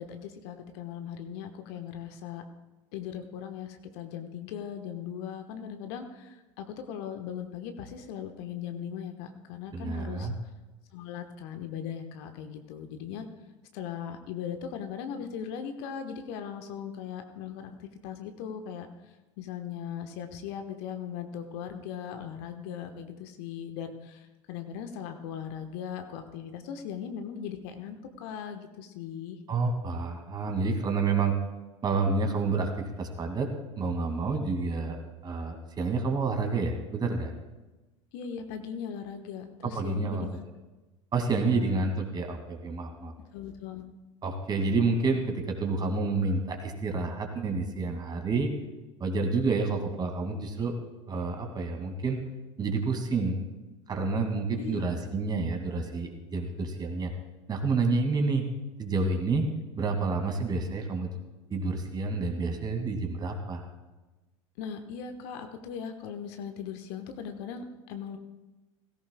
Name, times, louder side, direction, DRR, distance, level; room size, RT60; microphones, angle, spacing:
voice 1, 0.0-2.4 2.9-10.3 10.9-13.3 13.7-18.9 19.4-29.4 38.1-40.4 41.4-41.8 43.3-43.8 54.6-54.8 64.6-68.2, left 8 dB, 55° left, 6 dB, 1.2 m, -39 dB
voice 2, 9.7-10.3 29.5-31.3 31.8-33.5 33.8-35.0 35.2-37.3 39.6-40.4 41.1-43.1 44.2-48.5 49.0-50.7 51.1-52.2 52.6-53.4 53.9-57.1 57.5-58.4 58.8-59.5 59.8-61.1 61.5-63.6, right 3 dB, 25° right, 5 dB, 2.2 m, -29 dB
17.5 x 16.0 x 2.3 m, 1.1 s
figure-of-eight pair, 75°, 16 cm